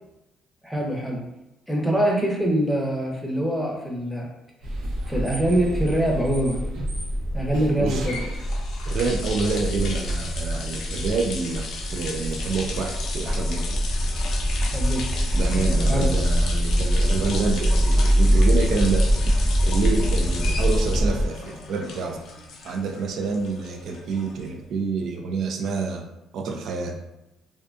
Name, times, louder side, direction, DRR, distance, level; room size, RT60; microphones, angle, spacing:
voice 1, 0.6-1.2 1.7-4.3 5.1-6.7 7.3-8.2 14.6-15.2 15.9-16.1, right 1 dB, ahead, -1 dB, 0.7 m, -24 dB
sound 1, 4.6-21.2, equal, 85° right, 0.8 m, -24 dB
sound 2, 7.9-24.8, left 4 dB, 70° left, 0.4 m, -36 dB
voice 2, 8.9-13.8 15.3-19.1 19.6-22.2 22.6-26.1 26.3-26.9, right 4 dB, 65° right, 3 dB, 0.3 m, -28 dB
2.6 x 2.2 x 2.5 m, 0.94 s
supercardioid pair, 80°, 0 cm